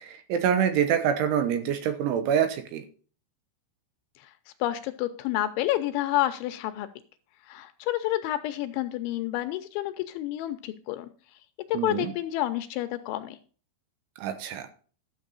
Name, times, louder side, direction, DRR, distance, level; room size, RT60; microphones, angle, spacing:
voice 1, 0.0-2.8 11.7-12.1 14.2-14.7, right 8 dB, 75° right, 9 dB, 3.4 m, -26 dB
voice 2, 4.6-6.9 7.5-11.1 11.8-13.4, left 14 dB, 80° left, 10 dB, 2.9 m, -29 dB
12.0 x 6.7 x 4.0 m, 0.39 s
omnidirectional pair, 5.7 m